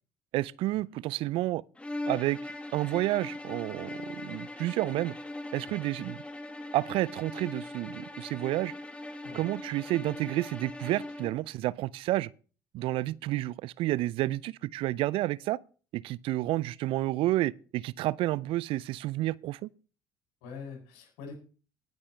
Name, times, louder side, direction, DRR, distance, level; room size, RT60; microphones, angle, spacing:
voice 1, 0.3-1.6 2.1-5.1 5.5-6.2 6.7-8.7 9.3-12.3 12.7-15.6 15.9-19.7, right 16 dB, 55° right, 0.4 m, -30 dB
sound 1, 1.8-11.4, left 2 dB, 10° left, 2.0 m, -40 dB
voice 2, 20.4-21.3, left 5 dB, 70° left, 7.7 m, -44 dB
19.0 x 9.6 x 3.3 m
hypercardioid pair, 60°, 11 cm